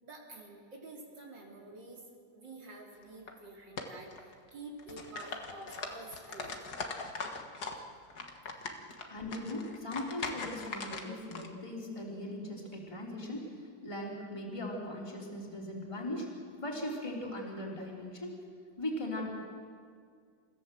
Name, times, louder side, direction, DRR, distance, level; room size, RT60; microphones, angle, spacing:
voice 1, 0.0-2.0 2.3-6.6 7.1-7.2, right 2 dB, 75° right, -2 dB, 4.3 m, -48 dB
sound 1, 3.0-3.3 3.8-4.5 4.8-7.8 8.1-11.5, left 4 dB, 60° left, 2.1 m, -40 dB
voice 2, 9.1-13.5 13.8-16.3 16.6-18.4 18.8-19.3, left 1 dB, 15° left, -2 dB, 3.6 m, -39 dB
29.0 x 15.5 x 7.7 m, 2.1 s
omnidirectional pair, 2.0 m